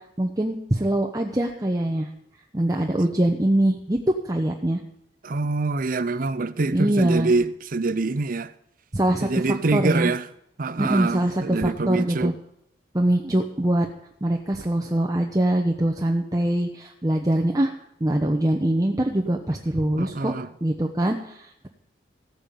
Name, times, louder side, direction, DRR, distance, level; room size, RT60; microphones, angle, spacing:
voice 1, 0.2-2.1 2.5-4.0 4.2-4.8 6.7-7.3 8.9-10.1 10.8-12.3 12.9-13.9 14.2-17.7 18.0-20.3 20.6-21.7, right 1 dB, 20° right, 1.0 m, -23 dB
voice 2, 5.2-8.5 9.2-10.2 10.6-12.3 20.0-20.5, right 3 dB, 50° right, 0.6 m, -25 dB
15.5 x 8.9 x 7.1 m
head